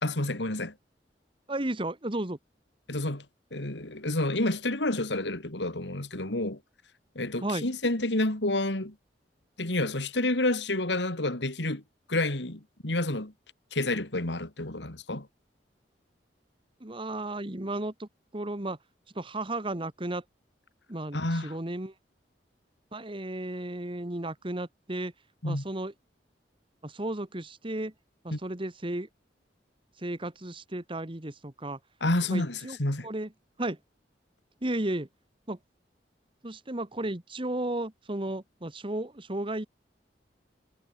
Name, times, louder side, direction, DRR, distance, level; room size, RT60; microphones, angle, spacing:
voice 1, 0.0-0.7 2.9-3.2 3.5-6.6 7.1-8.9 9.6-11.8 12.1-13.3 13.7-15.3 21.1-21.6 25.4-25.6 28.3-28.4 32.0-33.1, left 2 dB, 80° left, 3.2 m, -29 dB
voice 2, 1.5-2.4 7.4-7.7 16.8-18.8 19.2-20.2 20.9-21.9 22.9-25.1 25.4-25.9 26.8-27.9 28.2-29.1 30.0-31.8 32.3-32.8 33.0-33.3 33.6-33.8 34.6-35.1 35.5-35.6 36.4-39.7, right 1 dB, 30° right, 1.6 m, -34 dB
head